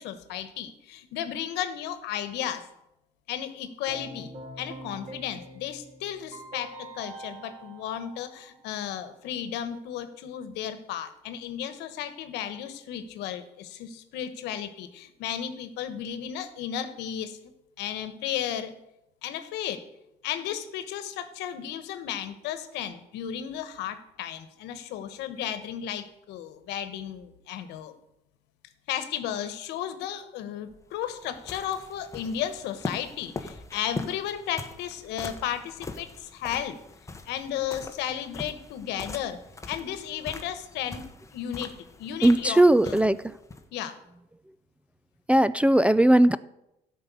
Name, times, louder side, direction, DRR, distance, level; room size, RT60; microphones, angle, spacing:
voice 1, 0.0-2.6 3.3-17.4 17.8-18.7 19.2-19.8 20.2-27.9 28.9-36.8 37.2-39.4 39.7-41.0 41.3-43.1 43.7-44.0, left 10 dB, 90° left, 11 dB, 1.2 m, -34 dB
Keyboard (musical), 3.9-8.8, right 1 dB, 50° right, 3.4 m, -44 dB
sound 1, 30.7-43.7, left 3 dB, 20° left, 1.0 m, -41 dB
voice 2, 42.2-43.2 45.3-46.4, right 1 dB, 5° right, 16 dB, 0.3 m, -18 dB
12.0 x 5.5 x 8.2 m, 0.85 s
cardioid pair, 110°, 17 cm